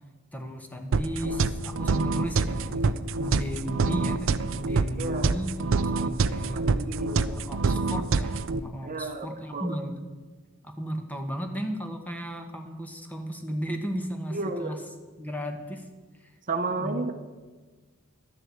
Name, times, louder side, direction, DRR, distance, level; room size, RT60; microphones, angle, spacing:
voice 1, 0.3-6.6 7.2-10.0 10.6-14.8 15.2-15.9 16.1-16.3 16.8-17.1, equal, 10° left, 4 dB, 1.1 m, -35 dB
sound 1, 0.9-8.6, right 4 dB, 65° right, 0.5 m, -26 dB
voice 2, 5.0-5.4 6.5-7.4 8.8-9.3 9.5-9.8 14.3-14.7 16.5-17.1, right 3 dB, 40° right, 6 dB, 0.9 m, -32 dB
11.5 x 7.7 x 8.1 m, 1.3 s
head